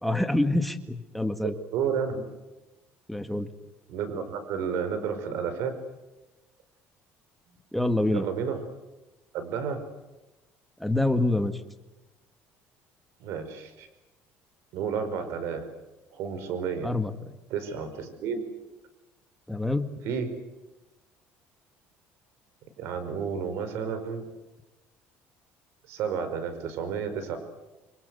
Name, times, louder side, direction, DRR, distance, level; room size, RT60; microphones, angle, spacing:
voice 1, 0.0-1.5 3.1-3.5 7.7-8.3 10.8-11.5 16.8-17.1 19.5-19.9, left 2 dB, ahead, 8 dB, 1.8 m, -26 dB
voice 2, 1.4-2.2 3.9-5.7 8.1-8.6 9.3-9.8 13.2-13.9 14.7-15.7 16.1-16.9 17.5-18.4 20.0-20.3 22.8-24.3 25.9-27.4, right 6 dB, 70° right, 10 dB, 5.3 m, -31 dB
28.5 x 24.0 x 8.2 m, 1.0 s
cardioid pair, 130°, 5 cm